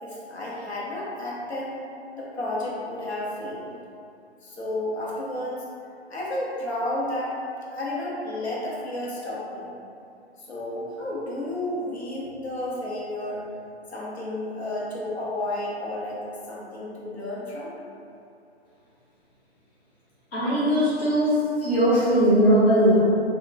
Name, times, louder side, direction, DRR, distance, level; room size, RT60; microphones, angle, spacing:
voice 1, 0.0-1.7 2.1-3.8 4.4-5.6 6.1-7.4 7.6-9.7 10.4-13.5 13.9-16.2 16.5-17.7, left 1 dB, 70° left, -6 dB, 1.0 m, -32 dB
voice 2, 20.3-23.0, equal, 10° left, -13 dB, 0.5 m, -20 dB
2.4 x 2.3 x 3.8 m, 2.6 s
figure-of-eight pair, 135°, 33 cm